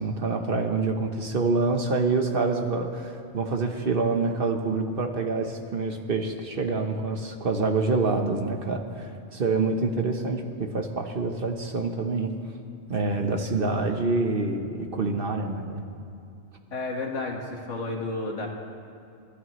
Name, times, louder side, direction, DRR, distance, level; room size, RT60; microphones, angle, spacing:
voice 1, 0.0-12.3 12.9-15.9, right 3 dB, 50° right, 4 dB, 1.1 m, -26 dB
voice 2, 16.7-18.5, left 2 dB, 75° left, 1 dB, 2.0 m, -31 dB
30.0 x 11.5 x 3.1 m, 2.7 s
omnidirectional pair, 1.3 m